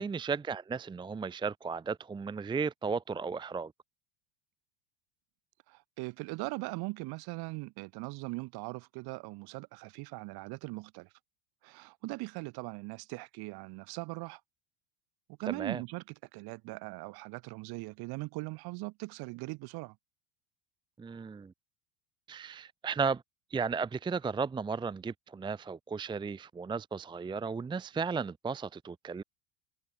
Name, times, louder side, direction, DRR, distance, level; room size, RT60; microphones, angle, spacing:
voice 1, 0.0-3.7 15.6-15.8 21.0-21.5 22.3-23.2 23.5-29.2, right 5 dB, 10° right, 0.8 m, -34 dB
voice 2, 5.7-11.1 11.6-14.4 15.3-16.0 16.3-20.0, right 24 dB, 50° right, 4.3 m, -40 dB
cardioid pair, 160°, 47 cm